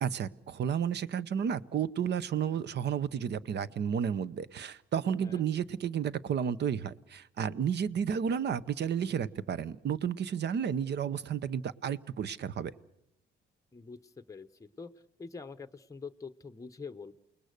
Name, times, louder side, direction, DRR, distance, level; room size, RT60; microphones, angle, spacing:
voice 1, 0.0-12.7, right 8 dB, 60° right, 17 dB, 0.9 m, -32 dB
voice 2, 13.7-14.9 15.2-17.1, left 4 dB, 15° left, 10 dB, 0.8 m, -45 dB
29.0 x 19.5 x 6.7 m, 0.81 s
cardioid pair, 90°, 20 cm